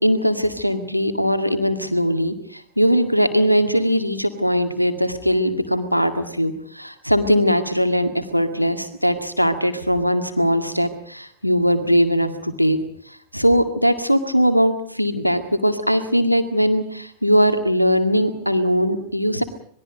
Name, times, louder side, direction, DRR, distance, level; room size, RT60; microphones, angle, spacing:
voice 1, 0.0-2.3 2.8-12.8 13.3-19.4, equal, 90° left, 9 dB, 2.0 m, -20 dB
26.5 x 20.5 x 5.2 m, 0.62 s
figure-of-eight pair, 90°, 0 cm